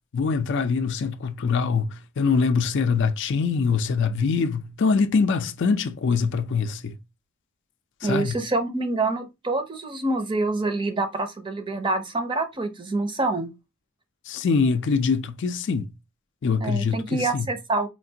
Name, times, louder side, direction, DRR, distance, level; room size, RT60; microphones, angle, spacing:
voice 1, 0.1-7.0 8.0-8.4 14.3-15.9 16.4-17.5, left 5 dB, 55° left, 0.4 m, -23 dB
voice 2, 8.0-13.5 16.6-17.9, right 2 dB, 20° right, 0.6 m, -26 dB
4.5 x 2.4 x 2.7 m
head